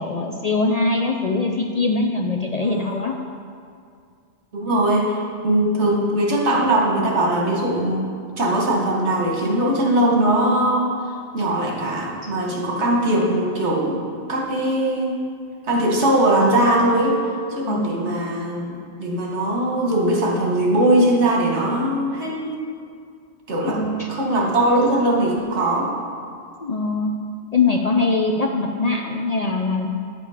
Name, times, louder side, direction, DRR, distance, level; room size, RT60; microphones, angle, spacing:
voice 1, 0.0-3.1 17.7-18.1 23.7-24.1 26.6-27.1 27.5-29.9, left 3 dB, 45° left, 2 dB, 0.5 m, -22 dB
voice 2, 2.6-3.0 4.5-8.1 8.4-14.0 14.3-15.2 15.6-17.2 17.5-22.6 23.5-25.9, right 1 dB, 70° right, -2 dB, 1.7 m, -20 dB
10.0 x 6.8 x 4.9 m, 2.3 s
omnidirectional pair, 1.2 m